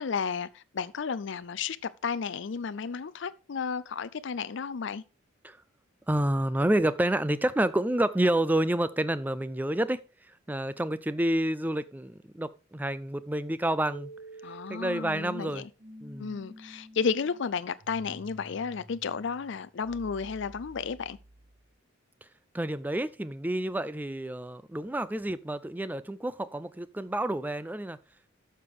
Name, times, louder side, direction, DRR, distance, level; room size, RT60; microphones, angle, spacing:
voice 1, 0.0-5.0 14.4-15.7 16.2-21.2, left 5 dB, 60° left, 0.4 m, -33 dB
voice 2, 6.1-14.1 14.7-15.7 16.0-16.4 22.2-22.3 22.5-28.0, right 1 dB, 10° right, 0.4 m, -29 dB
sound 1, 13.8-21.7, right 1 dB, 30° right, 4.3 m, -50 dB
12.0 x 6.7 x 3.6 m
head